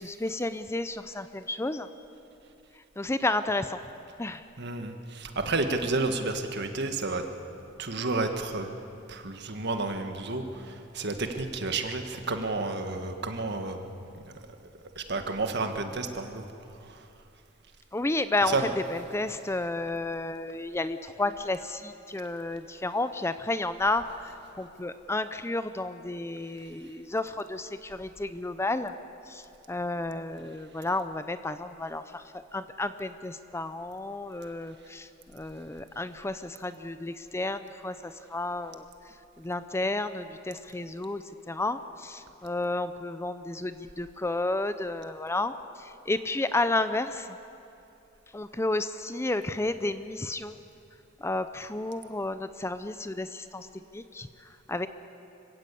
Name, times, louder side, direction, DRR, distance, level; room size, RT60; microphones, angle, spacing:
voice 1, 0.0-1.9 2.7-3.8 4.2-4.4 17.9-18.6 18.9-29.0 29.3-47.4 48.3-50.6 51.2-53.7 53.9-54.9, left 2 dB, 15° left, 11 dB, 0.5 m, -32 dB
voice 2, 4.6-7.2 7.8-8.7 9.1-14.3 14.9-16.4 16.7-17.1 18.4-18.8, right 3 dB, 60° right, 6 dB, 1.7 m, -31 dB
25.0 x 16.0 x 8.4 m, 2.7 s
head